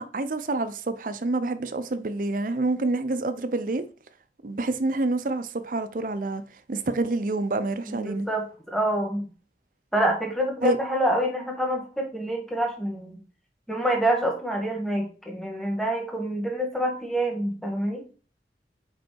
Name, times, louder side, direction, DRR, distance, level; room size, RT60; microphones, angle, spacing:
voice 1, 0.0-3.8 4.4-6.4 6.7-8.3 10.6-10.8, right 2 dB, 50° right, 0.6 m, -27 dB
voice 2, 7.9-9.3 9.9-13.2 13.7-18.0, right 1 dB, ahead, 1.4 m, -27 dB
5.2 x 4.6 x 4.5 m
head